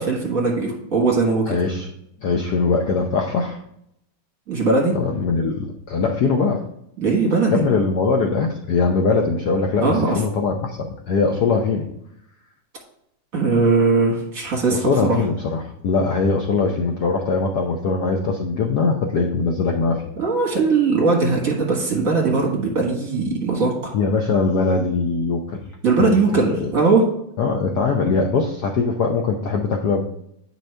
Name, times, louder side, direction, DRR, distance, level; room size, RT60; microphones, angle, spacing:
voice 1, 0.0-1.6 4.5-4.9 7.0-7.6 9.8-10.2 13.3-15.2 20.2-23.7 25.8-27.1, right 3 dB, 40° right, -1 dB, 1.9 m, -19 dB
voice 2, 1.5-1.9 2.2-3.6 4.9-6.7 7.5-11.9 14.7-20.0 23.9-25.6 26.0-26.7 27.4-30.0, left 4 dB, 70° left, 2 dB, 1.0 m, -21 dB
8.9 x 5.4 x 3.3 m, 0.76 s
omnidirectional pair, 2.4 m